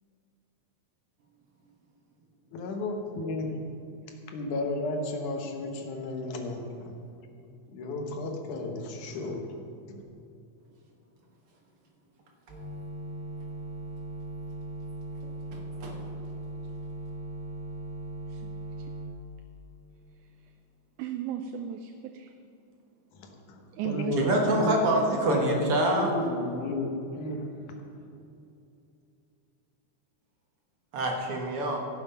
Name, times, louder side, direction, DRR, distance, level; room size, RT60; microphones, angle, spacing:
voice 1, 2.5-3.7 4.3-6.9 7.7-9.6 9.9-10.0 23.1-24.2 24.5-24.8 25.2-27.8, left 2 dB, 80° left, 3 dB, 2.7 m, -33 dB
sound 1, 12.5-19.1, right 2 dB, 15° right, 2.0 m, -38 dB
voice 2, 15.5-16.0 24.2-26.1 30.9-31.8, right 1 dB, 55° right, 1 dB, 1.8 m, -26 dB
voice 3, 21.0-22.3 23.7-25.2, right 8 dB, 85° right, 6 dB, 2.0 m, -35 dB
16.0 x 7.1 x 5.6 m, 2.6 s
omnidirectional pair, 3.5 m